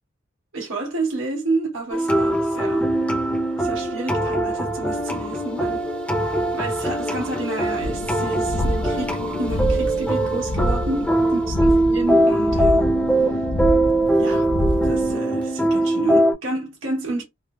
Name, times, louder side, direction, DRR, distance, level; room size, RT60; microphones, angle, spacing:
voice 1, 0.5-2.9 3.6-5.8 6.1-13.4 14.2-14.5 14.8-17.2, right 2 dB, 85° right, 1.1 m, -30 dB
sound 1, 1.9-16.3, right 1 dB, 5° left, 0.6 m, -21 dB
sound 2, 7.8-15.2, left 1 dB, 80° left, 0.5 m, -27 dB
3.2 x 2.0 x 2.3 m
head